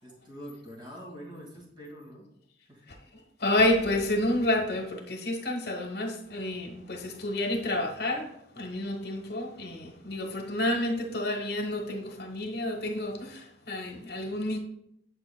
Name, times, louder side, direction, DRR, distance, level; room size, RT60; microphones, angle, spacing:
voice 1, 0.0-2.3 2.7-2.9, equal, 25° right, 2.1 m, -45 dB
voice 2, 3.4-14.6, left 1 dB, 65° left, 1.1 m, -29 dB
8.1 x 7.3 x 2.2 m
head